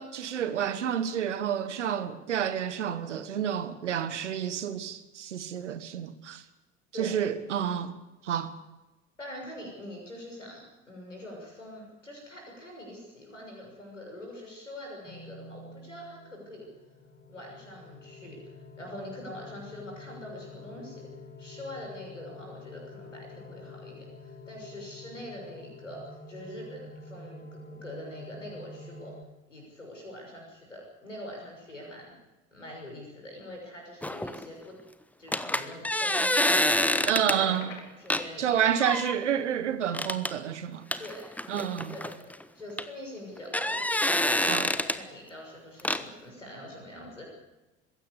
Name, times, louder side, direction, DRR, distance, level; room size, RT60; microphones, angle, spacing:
voice 1, 0.0-6.4 7.0-8.0 8.2-8.5 37.1-37.7 38.4-40.8 41.5-42.0 44.4-44.7, right 9 dB, 75° right, 1.5 m, -29 dB
voice 2, 9.2-16.7 17.3-21.1 21.4-29.1 29.5-32.2 32.5-34.7 35.2-39.0 41.0-41.2 41.9-42.3 42.5-44.0 44.5-47.2, left 1 dB, 85° left, 6.4 m, -44 dB
sound 1, 15.0-29.2, left 2 dB, 25° left, 3.0 m, -47 dB
sound 2, 34.0-34.4 35.3-37.4 38.1-38.3 38.8-39.1 39.9-40.3 40.9-42.4 42.8-42.9 43.4-45.0 45.8-46.0, left 1 dB, 5° left, 1.3 m, -27 dB
sound 3, 36.3-37.8, left 5 dB, 70° left, 3.8 m, -43 dB
22.0 x 16.5 x 8.3 m
figure-of-eight pair, 60°, 36 cm